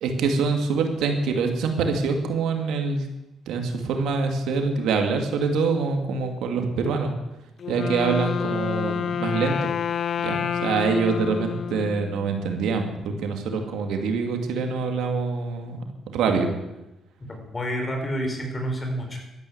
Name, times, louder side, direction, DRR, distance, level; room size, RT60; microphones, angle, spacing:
voice 1, 0.0-3.1 3.5-7.1 7.7-9.7 10.2-16.5, right 4 dB, 85° right, 4 dB, 2.4 m, -25 dB
Wind instrument woodwind instrument, 7.6-12.5, left 7 dB, 55° left, 0.6 m, -28 dB
voice 2, 17.3-19.2, equal, 25° left, 2 dB, 5.2 m, -29 dB
13.0 x 12.0 x 8.1 m, 0.95 s
cardioid pair, 90°, 0 cm